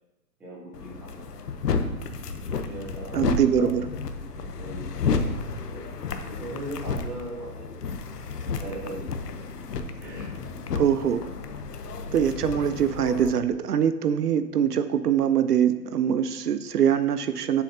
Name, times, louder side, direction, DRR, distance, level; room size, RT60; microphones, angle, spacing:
voice 1, 0.4-1.4 2.4-3.7 4.6-5.8 6.3-7.8 8.4-9.4 10.0-10.3, right 1 dB, 5° right, -6 dB, 0.9 m, -39 dB
sound 1, 0.7-13.3, left 4 dB, 70° left, 1.0 m, -32 dB
voice 2, 3.1-3.8 10.7-11.2 12.1-17.6, right 8 dB, 70° right, 12 dB, 0.7 m, -23 dB
11.5 x 7.0 x 2.8 m, 1.0 s
hypercardioid pair, 160°, 48 cm